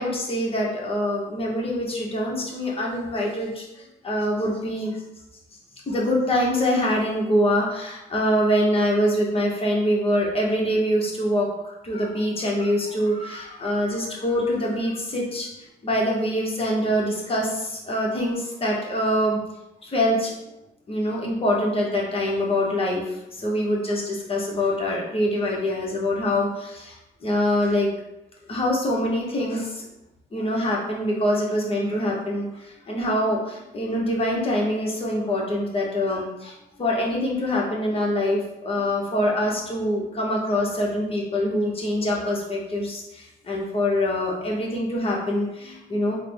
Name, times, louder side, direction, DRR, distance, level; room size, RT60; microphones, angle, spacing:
voice 1, 0.0-5.0 5.9-11.5 11.8-19.4 19.8-20.3 20.9-27.9 28.5-29.8 30.3-46.1, left 1 dB, 30° left, -3 dB, 1.0 m, -24 dB
3.5 x 2.1 x 3.4 m, 0.92 s
cardioid pair, 90°, 20 cm